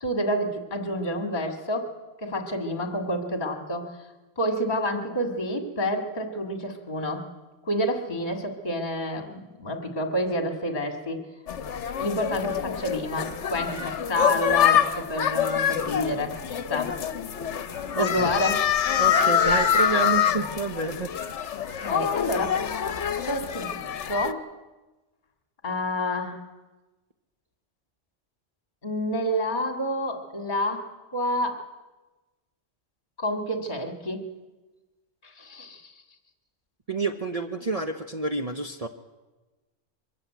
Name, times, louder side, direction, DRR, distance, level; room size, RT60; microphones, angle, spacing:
voice 1, 0.0-1.9 2.2-4.0 4.4-7.3 7.6-11.2 11.9-17.0 17.9-18.6 21.8-24.5 25.6-26.4 28.8-30.9 31.1-31.6 33.2-34.3 35.2-35.9, left 1 dB, 40° left, 5 dB, 2.2 m, -29 dB
sound 1, 11.5-24.3, left 8 dB, 70° left, 1.2 m, -25 dB
voice 2, 19.0-21.4 36.9-38.9, right 3 dB, 35° right, 6 dB, 0.9 m, -29 dB
23.5 x 14.5 x 9.2 m, 1.2 s
omnidirectional pair, 1.2 m